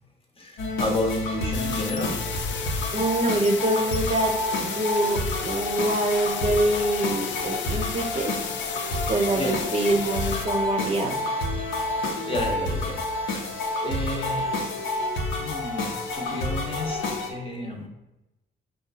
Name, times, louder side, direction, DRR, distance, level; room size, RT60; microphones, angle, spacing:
voice 1, 0.4-2.4 9.3-9.6 11.8-13.5 13.8-14.6 15.3-17.9, left 1 dB, 30° left, 1 dB, 1.0 m, -32 dB
sound 1, 0.6-17.3, left 2 dB, 85° left, 0.9 m, -29 dB
sound 2, 1.5-10.5, left 8 dB, 70° left, 0.5 m, -34 dB
voice 2, 2.9-8.4 9.1-11.2, right 1 dB, 30° right, 3 dB, 0.7 m, -25 dB
5.2 x 2.3 x 4.0 m, 0.95 s
cardioid pair, 90°, 20 cm